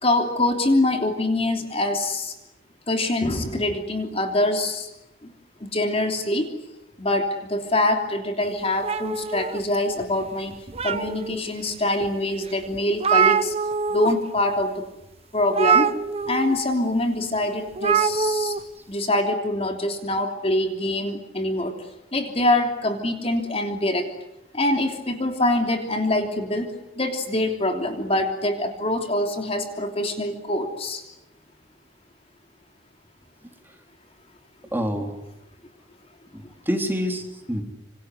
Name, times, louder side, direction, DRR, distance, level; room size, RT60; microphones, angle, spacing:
voice 1, 0.0-2.3 2.9-4.9 5.2-5.3 5.6-6.5 7.0-10.6 10.8-13.5 13.9-14.9 15.3-15.9 16.3-18.5 18.9-21.7 22.1-24.1 24.5-31.0, left 1 dB, 30° left, 5 dB, 3.2 m, -24 dB
sound 1, 8.8-10.0 10.5-11.4 12.0-12.1 12.5-12.6 12.7-14.1 14.4-14.6 15.5-16.5 17.7-18.6, right 6 dB, 35° right, 1.0 m, -23 dB
voice 2, 34.7-35.1 36.3-37.6, equal, 10° right, 3 dB, 3.9 m, -27 dB
27.0 x 26.5 x 8.1 m, 0.90 s
head